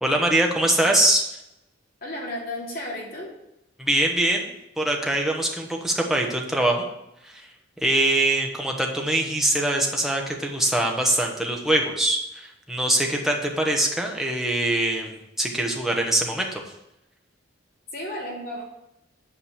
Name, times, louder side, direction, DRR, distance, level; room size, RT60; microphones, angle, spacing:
voice 1, 0.0-1.3 3.8-4.5 4.8-6.9 7.2-7.5 7.8-16.6, right 1 dB, ahead, 1 dB, 1.2 m, -23 dB
voice 2, 2.0-3.3 17.9-18.6, left 1 dB, 45° left, -3 dB, 3.1 m, -33 dB
8.7 x 5.2 x 7.3 m, 0.87 s
head